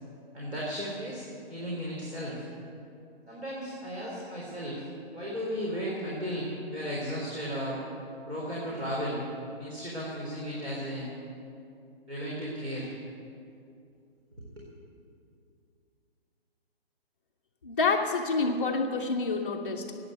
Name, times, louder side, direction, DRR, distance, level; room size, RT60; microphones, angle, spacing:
voice 1, 0.3-1.2 1.5-2.4 3.3-4.9 5.1-7.8 8.2-9.2 9.6-11.1 12.1-12.9 14.6-14.7, equal, 85° right, -5 dB, 3.8 m, -35 dB
voice 2, 17.6-20.0, left 4 dB, 15° left, -4 dB, 0.4 m, -28 dB
14.5 x 9.3 x 8.3 m, 2.6 s
figure-of-eight pair, 140°, 32 cm